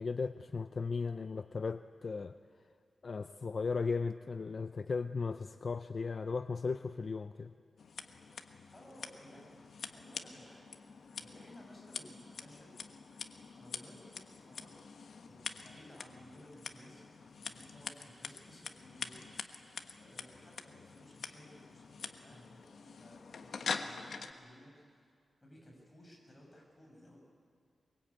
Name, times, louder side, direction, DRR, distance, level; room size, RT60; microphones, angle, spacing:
voice 1, 0.0-2.4 3.0-7.5, left 4 dB, 50° left, 11 dB, 0.5 m, -36 dB
Scissors, 7.8-24.3, left 5 dB, 75° left, 1.2 m, -46 dB
voice 2, 8.7-12.8 13.5-14.8 15.2-19.5 20.0-25.1 25.4-27.2, equal, 20° left, -1 dB, 7.2 m, -57 dB
23.0 x 23.0 x 8.7 m, 2.2 s
wide cardioid pair, 120°, 0 cm